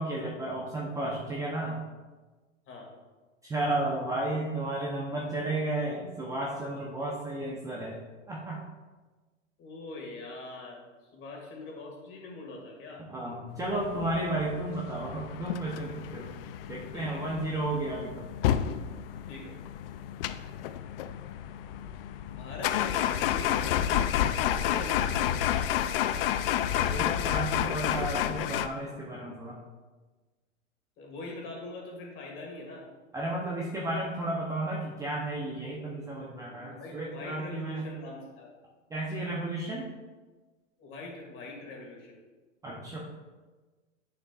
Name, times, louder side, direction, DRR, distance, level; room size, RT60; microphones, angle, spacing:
voice 1, 0.0-1.8 3.4-8.0 8.3-8.6 13.0-16.4 16.7-18.3 26.9-29.6 33.1-37.9 38.9-39.9 42.6-43.0, right 2 dB, 10° right, -4 dB, 0.7 m, -33 dB
voice 2, 9.6-10.8 11.1-13.0 16.9-17.4 19.3-19.6 22.3-24.1 24.4-25.4 31.0-32.9 33.8-34.0 36.6-38.5 40.8-42.2, left 2 dB, 30° left, 0 dB, 2.0 m, -43 dB
sound 1, 13.7-28.7, left 10 dB, 50° left, 0.4 m, -30 dB
8.6 x 6.8 x 2.4 m, 1.3 s
hypercardioid pair, 130°, 39 cm